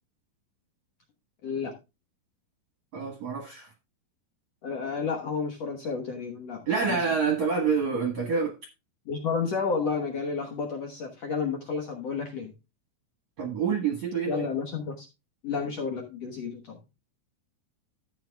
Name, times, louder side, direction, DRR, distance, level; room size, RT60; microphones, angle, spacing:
voice 1, 1.4-1.7 4.6-7.0 9.0-12.5 14.3-15.1 15.4-16.8, left 5 dB, 75° left, 1.5 m, -31 dB
voice 2, 2.9-3.7 6.7-8.6 13.4-14.5, right 5 dB, 60° right, 2.0 m, -27 dB
13.5 x 8.7 x 2.3 m
omnidirectional pair, 5.0 m